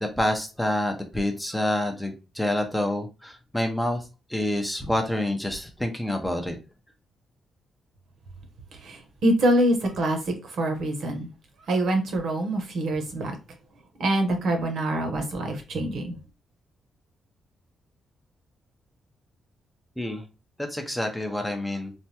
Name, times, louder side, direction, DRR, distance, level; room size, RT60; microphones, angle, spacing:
voice 1, 0.0-4.0 4.3-6.6 20.0-20.3 20.6-21.9, left 1 dB, 5° left, 0.5 m, -27 dB
voice 2, 9.2-11.3 11.7-13.3 14.0-16.2, right 1 dB, 65° right, 0.9 m, -25 dB
3.3 x 2.2 x 2.8 m
cardioid pair, 125°, 0 cm